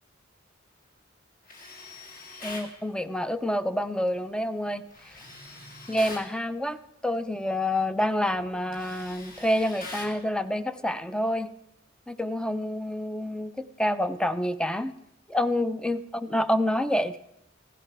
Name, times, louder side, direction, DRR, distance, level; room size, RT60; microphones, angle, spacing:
Tools, 1.5-2.7 4.9-6.3 7.8-8.0 8.3-10.2, left 2 dB, 45° left, 2.2 m, -43 dB
voice 1, 2.4-5.1 5.9-11.5 12.1-14.9 15.3-17.2, left 1 dB, 5° left, 13 dB, 0.4 m, -28 dB
15.5 x 11.0 x 5.9 m, 0.83 s
head